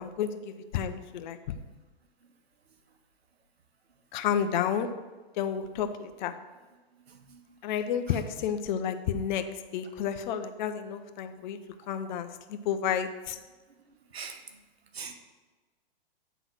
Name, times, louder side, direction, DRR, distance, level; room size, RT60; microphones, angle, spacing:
voice 1, 0.0-1.6 4.1-4.9 5.4-6.3 7.6-9.4 9.7-11.6 11.9-13.4, left 8 dB, 50° left, 8 dB, 0.8 m, -31 dB
voice 2, 7.1-7.4 14.1-14.4 14.9-15.1, right 6 dB, 90° right, 6 dB, 1.1 m, -41 dB
9.2 x 3.9 x 6.2 m, 1.3 s
hypercardioid pair, 130°, 30 cm